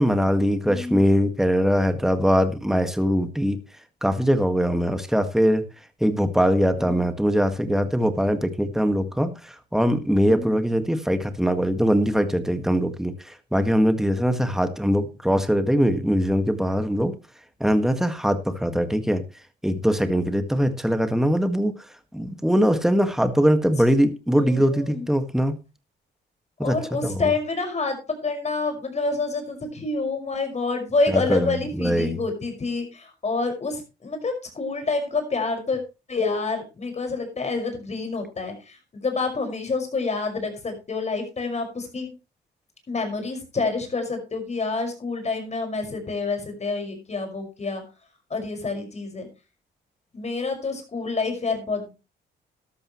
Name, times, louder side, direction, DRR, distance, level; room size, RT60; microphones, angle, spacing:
voice 1, 0.0-3.6 4.0-5.6 6.0-13.1 13.5-17.1 17.6-19.2 19.6-21.7 22.1-25.6 26.6-26.8 27.0-27.2 31.1-32.2, equal, ahead, 8 dB, 1.8 m, -22 dB
voice 2, 0.6-1.0 6.8-7.0 10.3-10.5 24.3-25.1 26.6-35.8 36.1-42.1 42.9-47.8 48.3-49.3 50.1-51.9, left 3 dB, 35° left, 5 dB, 5.7 m, -28 dB
13.0 x 12.5 x 3.2 m, 0.29 s
cardioid pair, 90°, 20 cm